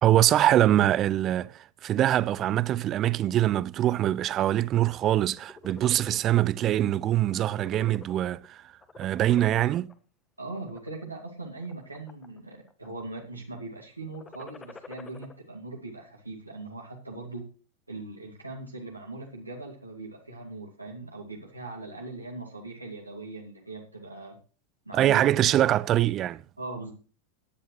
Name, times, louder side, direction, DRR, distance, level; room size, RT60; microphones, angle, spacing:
voice 1, 0.0-8.6 9.0-9.9 24.9-26.4, right 12 dB, 30° right, 0.5 m, -23 dB
sound 1, 5.3-6.2 6.7-6.9 7.2-8.5 8.8-9.9 10.6-11.0 11.6-12.4 12.7-13.2 14.0-15.3, left 4 dB, 15° left, 1.4 m, -47 dB
voice 2, 10.4-17.5 17.9-24.4 24.9-25.3 26.6-26.9, right 2 dB, 85° right, 2.2 m, -40 dB
17.0 x 10.5 x 3.1 m
figure-of-eight pair, 90°, 0 cm